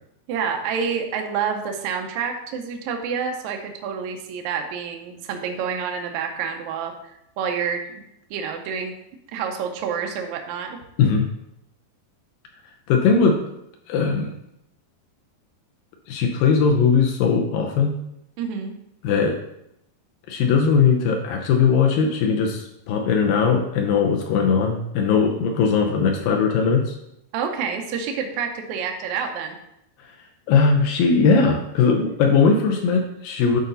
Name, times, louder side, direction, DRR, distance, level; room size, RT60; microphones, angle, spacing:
voice 1, 0.3-8.0 8.3-8.9 9.3-10.8 18.4-18.7 27.3-29.6, right 6 dB, 80° right, 3 dB, 1.7 m, -28 dB
voice 2, 11.0-11.3 12.9-13.4 13.9-14.3 16.1-18.0 19.0-19.4 20.3-27.0 30.5-33.6, left 5 dB, 75° left, 2 dB, 2.3 m, -19 dB
10.5 x 4.0 x 3.9 m, 0.78 s
omnidirectional pair, 4.4 m